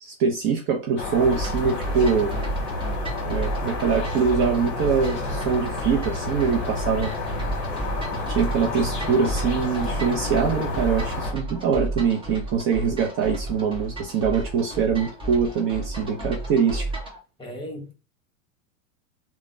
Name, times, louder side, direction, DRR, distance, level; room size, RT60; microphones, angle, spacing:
voice 1, 0.0-2.3 3.3-7.1 8.3-16.9, right 6 dB, 30° right, 0.5 m, -23 dB
sound 1, 1.0-11.3, left 2 dB, 35° left, 1.3 m, -30 dB
sound 2, 1.3-17.2, right 2 dB, 10° right, 0.9 m, -33 dB
voice 2, 17.4-17.9, equal, 10° left, 0.7 m, -36 dB
3.2 x 2.1 x 2.5 m
supercardioid pair, 130°, 40 cm